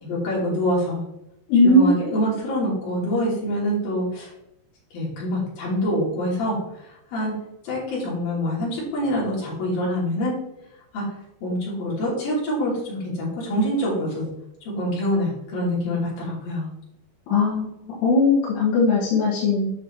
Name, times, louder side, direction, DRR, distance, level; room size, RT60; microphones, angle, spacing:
voice 1, 0.0-1.0 1.6-4.3 4.9-6.6 7.1-7.3 7.6-10.3 10.9-11.0 11.4-14.3 14.8-16.7, equal, 60° left, -6 dB, 4.8 m, -25 dB
voice 2, 1.5-2.1 17.3-19.7, left 2 dB, 85° left, -5 dB, 3.5 m, -19 dB
10.0 x 6.1 x 2.9 m, 0.82 s
omnidirectional pair, 4.7 m